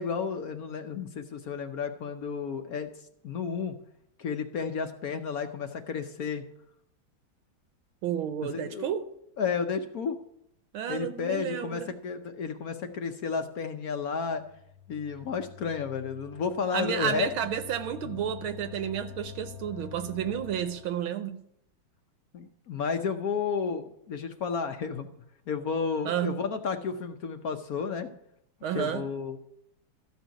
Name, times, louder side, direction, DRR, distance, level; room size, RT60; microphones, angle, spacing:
voice 1, 0.0-2.9 3.2-3.7 4.2-6.4 8.5-9.0 9.4-10.2 10.9-14.4 14.9-17.3 18.0-18.2 19.8-19.9 22.3-25.1 25.5-28.1 28.7-29.4, left 6 dB, 60° left, 1.0 m, -32 dB
voice 2, 8.0-9.0 10.7-11.9 16.7-21.4 26.0-26.4 28.6-29.0, right 9 dB, 75° right, 1.6 m, -31 dB
sound 1, 14.3-21.1, left 8 dB, 80° left, 2.1 m, -46 dB
13.5 x 5.6 x 8.9 m
omnidirectional pair, 2.3 m